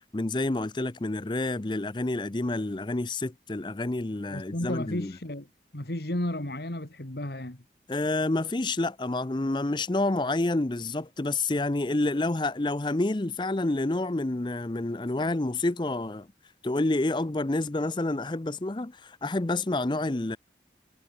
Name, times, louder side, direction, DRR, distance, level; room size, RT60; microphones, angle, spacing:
voice 1, 0.1-5.1 7.9-16.3 16.6-20.4, left 2 dB, 25° left, 0.6 m, -28 dB
voice 2, 4.3-5.5 5.7-7.6, left 1 dB, 65° left, 2.5 m, -33 dB
head